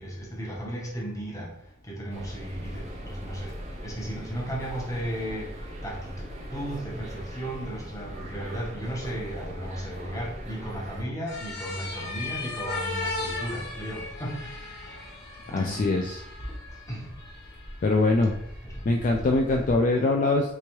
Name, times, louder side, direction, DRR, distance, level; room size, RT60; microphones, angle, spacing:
voice 1, 0.0-6.2 6.5-15.9 16.5-17.1 18.6-18.9, equal, 15° left, 0.8 m, -35 dB
sound 1, 2.1-11.0, equal, 35° right, 0.5 m, -40 dB
sound 2, 11.3-19.8, left 2 dB, 60° left, 0.9 m, -37 dB
voice 2, 15.5-16.2 17.8-18.3 18.9-20.5, left 2 dB, 40° left, 0.3 m, -23 dB
3.4 x 3.0 x 3.0 m
head